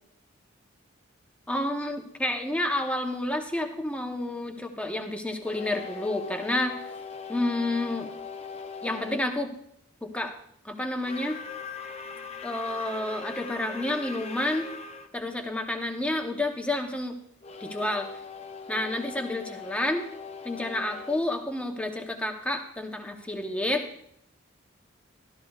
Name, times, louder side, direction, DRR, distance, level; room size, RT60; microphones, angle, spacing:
voice 1, 1.5-6.8 7.3-8.1 8.8-9.5 10.0-10.3 10.6-11.4 12.4-14.7 15.1-17.2 17.6-18.1 18.7-20.0 20.4-23.8, left 1 dB, 5° left, 4 dB, 0.9 m, -30 dB
sound 1, 5.4-9.3 10.9-15.1 17.4-22.3, left 5 dB, 30° left, 0.6 m, -41 dB
13.5 x 13.0 x 2.4 m, 0.68 s
head